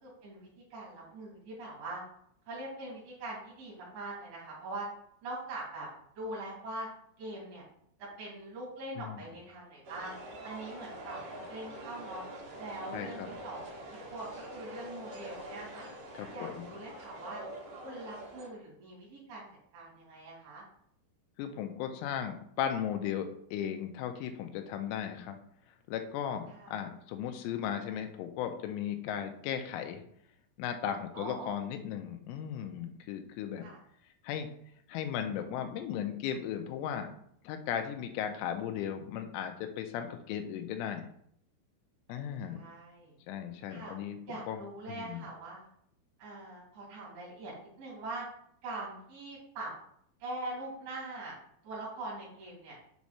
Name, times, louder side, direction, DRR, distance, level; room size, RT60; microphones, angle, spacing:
voice 1, 0.0-2.0 2.4-4.9 5.2-5.9 6.1-6.9 7.2-7.6 8.0-10.1 10.4-12.2 12.6-15.9 16.3-17.4 17.8-19.5 19.7-20.6 26.5-26.7 31.1-31.6 33.6-33.8 42.1-43.2 43.7-43.9 44.3-45.7 46.2-48.2 48.6-49.7 50.2-51.3 51.6-52.8, right 2 dB, 45° right, -5 dB, 3.4 m, -42 dB
sound 1, 9.8-18.5, right 1 dB, 70° right, 1.5 m, -45 dB
voice 2, 12.9-13.3 16.1-16.7 21.4-25.4 25.9-30.0 30.6-33.7 34.2-34.5 34.9-37.1 37.4-41.1 42.1-42.6 43.3-44.2 44.5-44.6 44.9-45.2, left 9 dB, 85° left, 6 dB, 3.2 m, -36 dB
7.4 x 4.7 x 4.1 m, 0.68 s
omnidirectional pair, 5.8 m